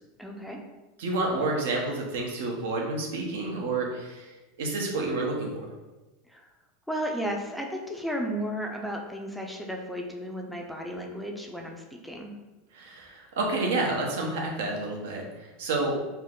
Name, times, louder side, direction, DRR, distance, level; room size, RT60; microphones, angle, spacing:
voice 1, 0.2-0.6 6.2-6.5 6.9-12.3, equal, ahead, 0 dB, 0.4 m, -34 dB
voice 2, 1.0-5.7 12.7-16.1, right 2 dB, 80° right, 0 dB, 0.9 m, -29 dB
4.2 x 2.2 x 3.7 m, 1.1 s
supercardioid pair, 155°, 0 cm